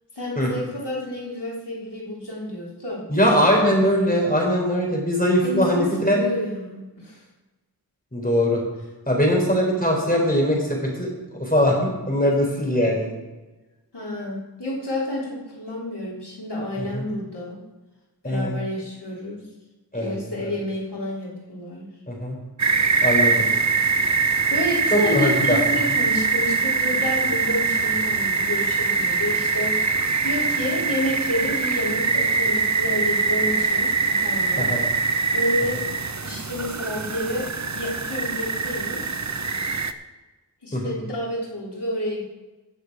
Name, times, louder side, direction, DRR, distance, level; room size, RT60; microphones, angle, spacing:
voice 1, 0.2-3.0 5.4-7.2 13.9-17.6 18.2-19.5 19.9-21.9 24.5-29.8 30.2-34.7 35.3-35.8 36.2-39.0 40.6-42.2, left 1 dB, 75° left, -5 dB, 3.8 m, -29 dB
voice 2, 3.1-6.2 8.1-8.6 9.1-11.1 11.4-13.1 16.8-17.0 18.2-18.6 19.9-20.5 22.1-22.4 23.0-23.5 24.9-25.6 34.6-34.8 40.7-41.0, equal, 20° left, -1 dB, 4.2 m, -21 dB
sound 1, 22.6-39.9, right 4 dB, 45° right, 0.8 m, -23 dB
18.0 x 6.6 x 4.9 m, 1.1 s
wide cardioid pair, 40°, 41 cm